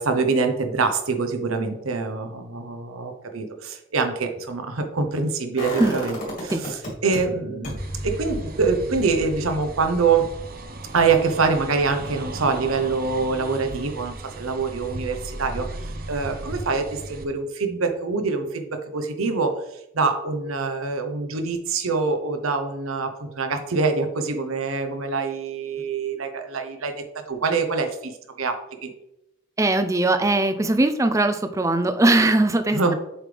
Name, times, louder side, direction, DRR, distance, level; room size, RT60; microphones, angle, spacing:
voice 1, 0.0-10.3 10.9-19.6 19.9-28.9 32.7-32.9, right 4 dB, 80° right, 6 dB, 0.8 m, -25 dB
sound 1, 5.6-7.2 7.6-13.5 13.8-13.9, equal, 40° left, 2.1 m, -36 dB
sound 2, 7.8-17.2, right 2 dB, 45° right, 0.7 m, -36 dB
voice 2, 29.6-32.9, right 2 dB, 15° right, 9 dB, 0.4 m, -20 dB
7.4 x 5.0 x 3.4 m, 0.85 s
head